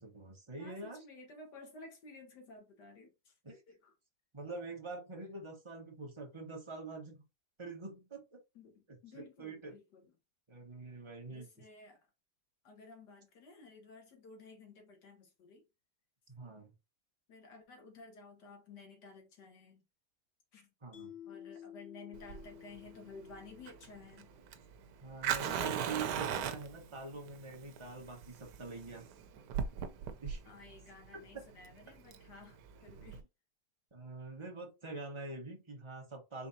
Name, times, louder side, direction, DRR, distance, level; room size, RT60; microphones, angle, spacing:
voice 1, 0.0-1.0 3.4-3.6 4.3-7.2 7.6-8.4 8.9-9.8 10.5-11.5 16.3-16.7 20.8-21.1 25.0-29.1 30.2-30.4 31.1-31.4 33.0-33.1 33.9-36.5, right 3 dB, 20° right, 1.2 m, -45 dB
voice 2, 0.6-3.3 3.7-3.9 8.5-10.1 11.3-12.0 12.6-15.6 17.3-19.8 20.5-20.7 21.2-24.3 30.5-33.2, left 3 dB, 85° left, 2.1 m, -54 dB
Mallet percussion, 20.9-24.2, left 10 dB, 55° left, 1.1 m, -52 dB
Fire, 22.1-33.2, right 8 dB, 90° right, 1.3 m, -39 dB
5.0 x 3.4 x 2.7 m
omnidirectional pair, 1.7 m